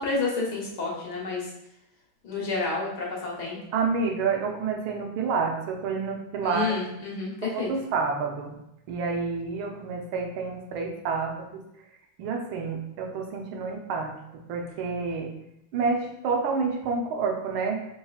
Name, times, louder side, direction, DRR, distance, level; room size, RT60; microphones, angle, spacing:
voice 1, 0.0-1.5 2.2-3.6 6.4-7.7, left 3 dB, 60° left, -4 dB, 1.5 m, -30 dB
voice 2, 3.7-6.8 7.4-8.6 8.9-11.6 12.2-15.3 15.7-17.8, right 4 dB, 85° right, 2 dB, 1.5 m, -29 dB
4.2 x 3.9 x 2.3 m, 0.83 s
omnidirectional pair, 2.2 m